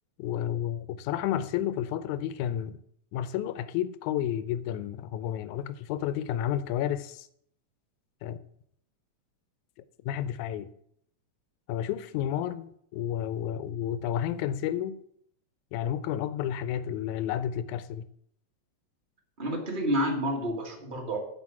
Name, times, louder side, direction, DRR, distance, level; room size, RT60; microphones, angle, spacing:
voice 1, 0.2-2.8 3.1-7.3 8.2-8.4 10.1-10.7 11.7-15.0 15.7-18.0, left 10 dB, 90° left, 2.1 m, -31 dB
voice 2, 19.4-21.2, equal, 20° right, 1.5 m, -29 dB
12.5 x 4.8 x 7.4 m
omnidirectional pair, 3.3 m